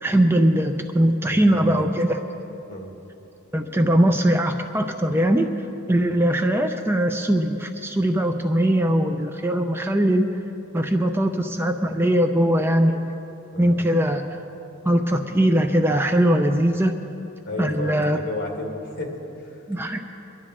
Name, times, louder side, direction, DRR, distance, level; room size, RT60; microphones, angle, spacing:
voice 1, 0.0-2.2 3.5-5.5 5.9-10.2 10.7-13.0 13.6-14.2 14.8-16.9 17.6-18.2 19.7-20.0, right 1 dB, 10° right, 5 dB, 0.5 m, -20 dB
voice 2, 1.3-1.8 2.7-2.9 13.5-13.8 17.5-19.5 19.9-20.0, left 2 dB, 55° left, 0 dB, 2.1 m, -33 dB
23.0 x 12.0 x 3.7 m, 3.0 s
head